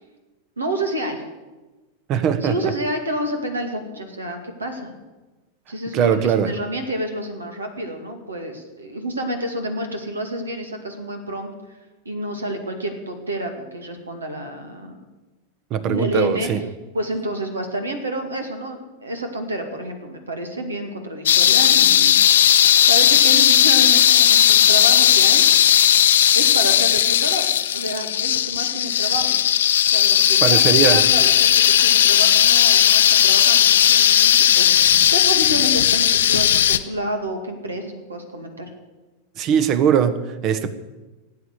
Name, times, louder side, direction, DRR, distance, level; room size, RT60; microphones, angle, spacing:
voice 1, 0.6-1.2 2.2-4.9 5.7-11.8 12.0-15.0 15.9-22.2 22.9-25.4 26.3-29.4 29.8-31.5 31.8-38.7, right 1 dB, 75° right, 5 dB, 2.3 m, -29 dB
voice 2, 2.1-2.7 5.9-6.5 15.7-16.6 30.4-31.0 39.4-40.7, right 8 dB, 35° right, 13 dB, 1.2 m, -20 dB
sound 1, 21.3-36.8, left 10 dB, 60° left, 0.7 m, -16 dB
17.5 x 8.8 x 8.2 m, 1.2 s
figure-of-eight pair, 90°, 0 cm